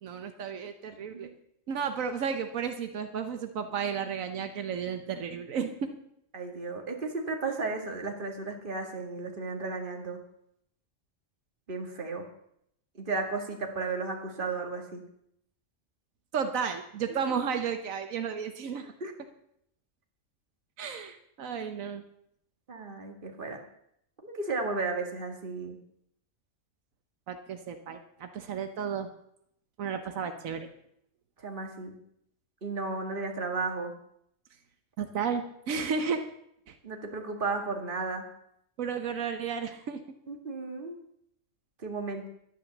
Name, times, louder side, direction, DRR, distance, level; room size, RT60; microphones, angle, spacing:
voice 1, 0.0-1.3 1.7-5.9 16.3-18.8 20.8-22.0 27.3-29.1 29.8-30.7 35.0-36.2 36.7-36.8 38.8-40.0, right 6 dB, 85° right, 7 dB, 1.3 m, -33 dB
voice 2, 6.3-10.2 11.7-12.3 13.0-15.0 19.0-19.1 22.7-23.6 24.2-25.8 31.4-31.9 32.6-33.9 36.8-38.2 40.3-41.0 41.8-42.3, right 3 dB, 40° right, 3 dB, 2.1 m, -34 dB
11.5 x 10.0 x 7.1 m, 0.73 s
omnidirectional pair, 1.4 m